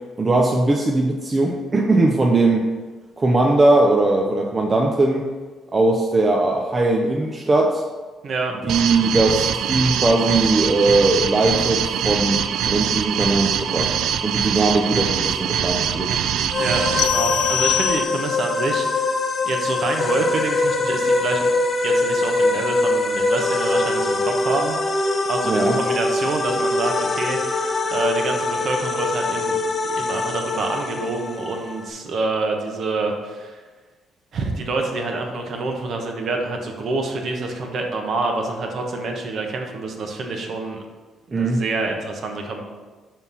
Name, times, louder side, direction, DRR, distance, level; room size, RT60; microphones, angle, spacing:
voice 1, 0.2-2.7 3.2-5.3 5.7-7.8 8.6-13.9 14.2-16.1 25.5-25.8 41.3-41.6, right 2 dB, 25° right, 1 dB, 0.6 m, -19 dB
voice 2, 8.2-8.6 16.5-21.5 21.8-29.6 29.9-33.6 34.3-40.8 41.3-42.6, right 3 dB, 55° right, 2 dB, 1.1 m, -27 dB
sound 1, 8.7-18.0, right 8 dB, 75° right, 0.3 m, -23 dB
sound 2, 16.5-31.9, left 2 dB, 30° left, 0.6 m, -23 dB
sound 3, 17.0-18.5, left 12 dB, 75° left, 0.6 m, -24 dB
5.5 x 4.5 x 5.6 m, 1.4 s
cardioid pair, 120°, 0 cm